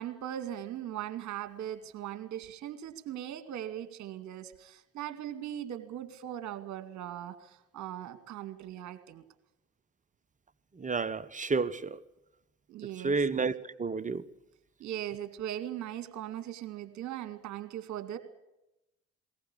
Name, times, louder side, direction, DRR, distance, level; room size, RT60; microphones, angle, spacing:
voice 1, 0.0-9.2 12.7-13.2 14.8-18.2, right 11 dB, 50° right, 2.2 m, -39 dB
voice 2, 10.8-12.0 13.0-13.5 13.8-14.2, right 4 dB, 20° right, 1.0 m, -30 dB
21.0 x 18.5 x 8.6 m
figure-of-eight pair, 55°, 37 cm